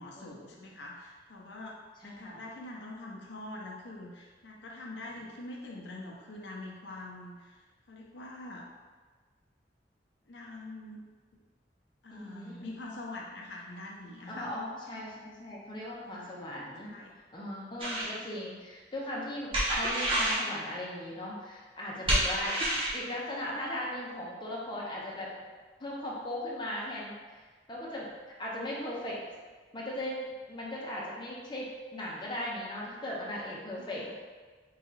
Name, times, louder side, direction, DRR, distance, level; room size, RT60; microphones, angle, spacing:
voice 1, 0.0-8.7 10.3-11.0 11.3-11.4 12.0-14.5 16.1-16.4 16.8-17.1 22.0-22.1 33.7-34.1, left 2 dB, 80° left, -2 dB, 0.6 m, -44 dB
voice 2, 2.0-2.4 12.1-12.7 14.3-17.0 17.3-22.6 22.9-25.3 25.8-27.1 27.7-28.1 28.4-29.2 29.7-30.2 30.5-34.1, left 1 dB, 25° left, -5 dB, 0.7 m, -38 dB
sound 1, 17.8-18.1 19.5-20.5 22.1-23.0, right 1 dB, 30° right, 0.9 m, -28 dB
3.1 x 2.8 x 3.8 m, 1.4 s
head